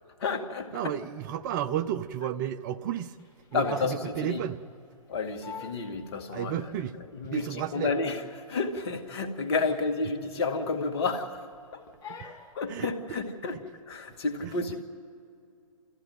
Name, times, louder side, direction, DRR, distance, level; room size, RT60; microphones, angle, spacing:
voice 1, 0.2-0.9 3.5-4.4 5.1-6.6 7.1-7.5 7.7-8.2 8.5-11.4 12.5-13.6 13.9-14.8, left 4 dB, 50° left, 2.2 m, -30 dB
voice 2, 0.7-3.2 3.5-4.6 6.3-7.0 7.2-7.9 12.1-12.3 12.7-13.2 13.5-13.6 14.4-14.5, right 10 dB, 35° right, 0.7 m, -33 dB
Crying sobbing, 3.2-4.0 4.4-4.6 5.1-5.2 5.4-5.9 6.4-6.5 7.3-8.1 8.4-8.6 9.0-9.1 9.5-9.6 10.4-11.0 11.3-11.6 12.0-12.5, left 5 dB, 20° left, 2.7 m, -45 dB
29.5 x 14.5 x 9.3 m
figure-of-eight pair, 125°, 18 cm